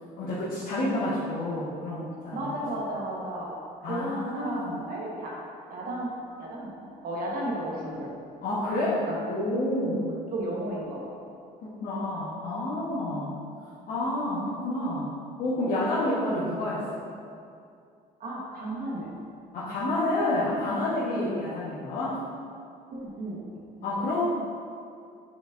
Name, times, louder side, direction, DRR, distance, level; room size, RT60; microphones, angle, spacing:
voice 1, 0.2-2.5 3.8-4.8 8.4-10.1 11.6-13.4 13.9-17.0 19.5-22.2 23.8-24.2, left 1 dB, 60° left, -10 dB, 1.3 m, -29 dB
voice 2, 2.3-3.6 3.8-5.3 5.7-6.1 6.4-8.1 9.0-9.2 9.9-10.0 10.3-11.0 18.2-19.1 21.1-21.4 22.9-23.4 23.8-24.1, right 1 dB, 60° right, -4 dB, 1.3 m, -34 dB
6.9 x 5.2 x 2.6 m, 2.4 s
cardioid pair, 110°, 17 cm